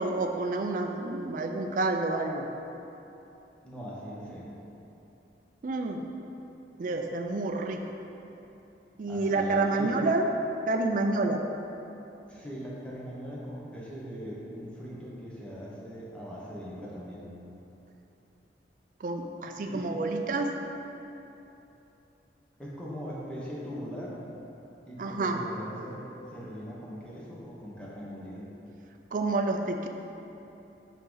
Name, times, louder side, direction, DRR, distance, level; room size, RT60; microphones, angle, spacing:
voice 1, 0.0-2.5 5.6-6.0 6.8-7.9 9.0-10.3 10.7-11.4 19.0-20.5 25.0-25.4 29.1-29.9, right 2 dB, 50° right, 4 dB, 0.4 m, -29 dB
voice 2, 3.6-4.7 9.1-10.0 12.3-17.3 19.7-19.9 22.6-24.1 24.9-28.5, equal, 5° left, -6 dB, 0.9 m, -40 dB
5.4 x 5.2 x 3.9 m, 3.0 s
head